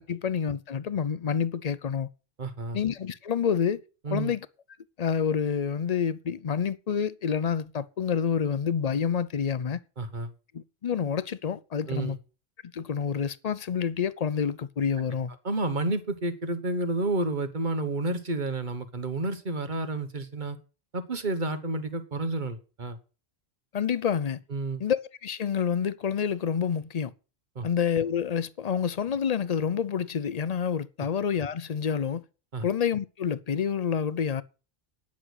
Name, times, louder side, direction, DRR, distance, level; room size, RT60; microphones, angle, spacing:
voice 1, 0.0-2.1 2.7-3.8 4.1-4.5 5.0-9.8 10.5-12.2 12.7-15.3 23.7-24.4 24.8-27.1 27.6-32.2 32.6-34.4, left 7 dB, 45° left, 0.6 m, -28 dB
voice 2, 2.4-2.8 4.0-4.3 10.0-10.3 11.9-12.2 15.4-20.6 20.9-23.0 24.5-24.8 27.5-27.7 32.5-32.7, right 2 dB, 50° right, 1.4 m, -30 dB
10.0 x 6.4 x 8.2 m
omnidirectional pair, 1.1 m